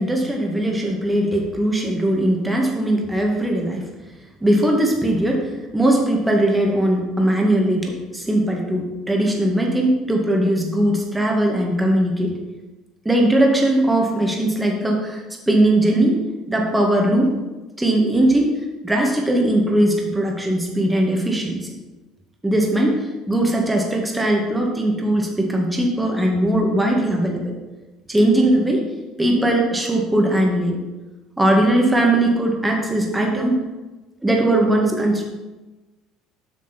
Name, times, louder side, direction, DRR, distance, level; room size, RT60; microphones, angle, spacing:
voice 1, 0.0-3.8 4.4-12.3 13.1-16.2 16.5-17.4 17.8-18.5 18.8-21.7 22.4-27.5 28.1-28.9 29.2-30.8 31.4-33.7 34.2-35.2, right 1 dB, 10° right, 0 dB, 1.9 m, -19 dB
8.1 x 5.9 x 4.5 m, 1.1 s
supercardioid pair, 80°, 0 cm